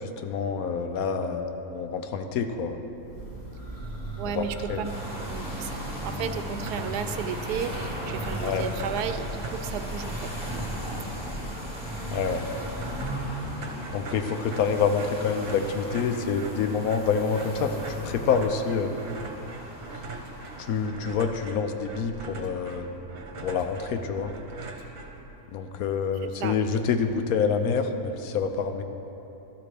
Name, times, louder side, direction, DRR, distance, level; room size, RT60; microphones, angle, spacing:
voice 1, 0.2-2.8 4.3-4.8 8.4-8.7 12.1-12.5 13.9-18.9 20.6-22.9 23.4-24.3 25.5-28.8, left 6 dB, 70° left, 7 dB, 1.1 m, -27 dB
Church bell, 2.9-13.2, right 2 dB, 40° left, 2.0 m, -39 dB
voice 2, 4.2-10.7 26.2-26.6, right 7 dB, 85° right, 9 dB, 1.1 m, -34 dB
sound 1, 4.8-20.9, equal, 5° right, 1.9 m, -37 dB
sound 2, 6.6-7.1 7.5-7.6 7.7-25.6, right 3 dB, 65° right, 1.3 m, -42 dB
12.0 x 12.0 x 3.4 m, 3.0 s
omnidirectional pair, 1.6 m